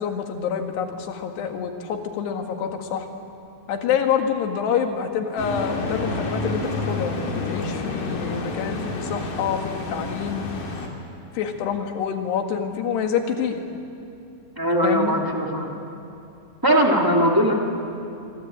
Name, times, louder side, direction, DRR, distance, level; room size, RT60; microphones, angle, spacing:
voice 1, 0.0-3.1 3.7-10.5 11.3-13.6 14.8-15.2, left 7 dB, 85° left, 5 dB, 3.9 m, -27 dB
sound 1, 5.4-10.9, left 2 dB, 55° left, 4.2 m, -29 dB
voice 2, 14.5-15.7 16.6-17.5, equal, 10° right, 0 dB, 1.3 m, -20 dB
27.0 x 24.0 x 8.6 m, 2.8 s
omnidirectional pair, 4.7 m